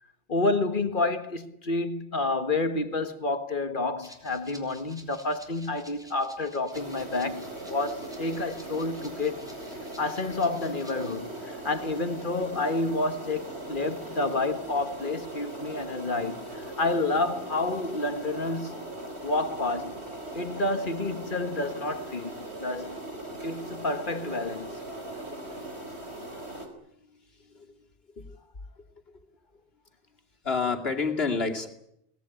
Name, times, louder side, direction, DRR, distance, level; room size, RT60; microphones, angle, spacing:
voice 1, 0.3-9.5 10.0-18.8 19.2-20.0 20.3-23.0 23.4-24.8, left 2 dB, 50° left, 1.7 m, -29 dB
Rattle (instrument), 4.0-11.2, equal, 5° right, 4.6 m, -53 dB
sound 1, 6.7-26.7, right 1 dB, 80° right, 4.6 m, -39 dB
voice 2, 26.5-27.8 28.2-28.3 30.4-31.7, left 4 dB, 70° left, 2.8 m, -30 dB
23.0 x 19.5 x 10.0 m
omnidirectional pair, 1.1 m